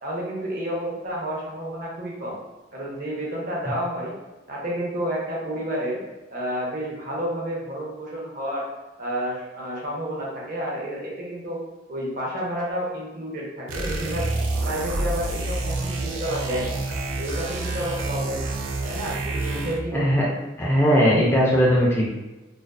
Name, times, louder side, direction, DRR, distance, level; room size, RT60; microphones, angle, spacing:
voice 1, 0.0-2.4 2.7-4.1 4.5-6.0 6.3-8.7 9.0-11.6 11.9-14.2 14.6-16.8 17.2-18.5 18.8-20.1, equal, 45° right, -3 dB, 0.6 m, -30 dB
sound 1, 13.7-19.9, right 2 dB, 90° right, 0.4 m, -28 dB
voice 2, 19.9-20.2 20.6-22.1, equal, 15° left, -5 dB, 0.3 m, -19 dB
2.4 x 2.2 x 2.2 m, 1.1 s
head